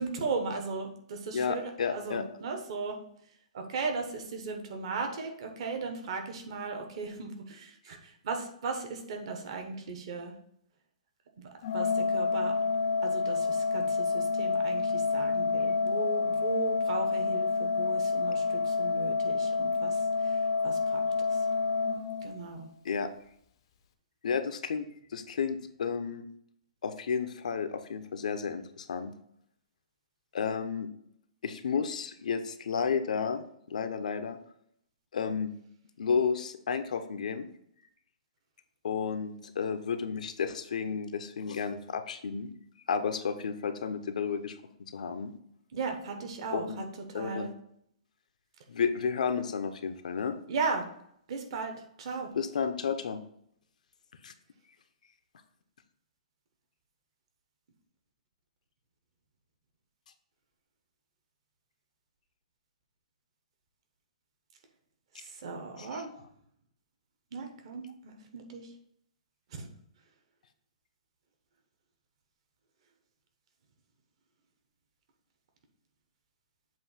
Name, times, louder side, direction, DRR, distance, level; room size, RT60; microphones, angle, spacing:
voice 1, 0.0-2.9 3.5-10.3 11.4-12.5 13.0-20.3 20.6-21.1 22.2-22.7 45.7-46.8 47.1-47.5 50.5-50.8 51.3-51.7 52.0-52.3 65.2-66.1 67.3-68.6 69.5-69.7, right 4 dB, 45° right, 4 dB, 1.1 m, -37 dB
voice 2, 1.3-2.2 22.8-23.1 24.2-24.8 25.1-26.3 26.8-29.1 30.3-30.9 31.4-34.4 35.1-35.5 36.0-37.5 38.8-42.5 42.9-44.6 44.9-45.3 46.5-46.8 47.1-47.5 48.7-50.3 52.3-53.2 54.2-54.3 65.8-66.0, left 6 dB, 75° left, 9 dB, 0.7 m, -32 dB
Organ, 11.6-22.7, left 4 dB, 40° left, 0.6 m, -28 dB
7.7 x 2.7 x 5.7 m, 0.71 s
hypercardioid pair, 170°, 4 cm